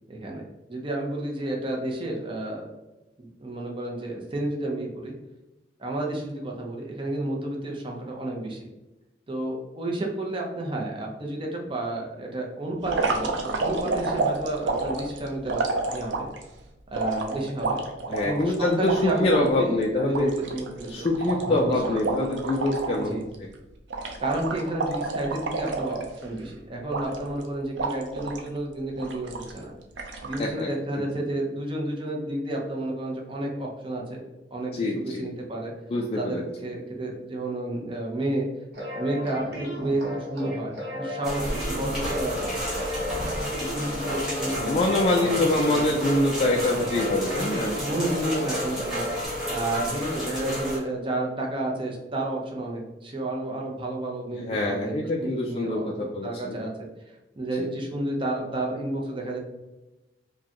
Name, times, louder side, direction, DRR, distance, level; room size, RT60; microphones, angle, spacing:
voice 1, 0.1-2.7 3.2-5.1 5.8-8.7 9.3-15.6 15.9-16.3 16.9-21.1 21.5-22.1 22.9-23.2 24.2-29.7 30.2-34.2 34.5-35.7 36.2-38.5 38.9-42.6 43.0-43.3 43.6-44.8 45.2-45.9 47.0-47.1 47.8-49.1 49.5-56.9 57.4-59.4, right 1 dB, 30° right, -1 dB, 0.7 m, -31 dB
sound 1, 12.8-16.4 16.9-19.5 19.8-19.9 20.1-23.1 23.3-23.6 23.9-26.4 26.9-27.4 27.8-28.5 29.0-29.6 30.0-30.5, right 3 dB, 90° right, 0.6 m, -29 dB
voice 2, 18.1-20.3 20.8-23.5 30.4-30.7 31.0-31.1 34.7-35.3 35.9-36.4 44.6-47.8 54.3-56.6 57.6-57.7, left 2 dB, 30° left, -1 dB, 0.3 m, -25 dB
sound 2, 38.7-49.2, equal, 60° right, 1.1 m, -35 dB
sound 3, 41.2-50.8, equal, ahead, 1.3 m, -31 dB
4.9 x 2.2 x 2.8 m, 1.0 s
head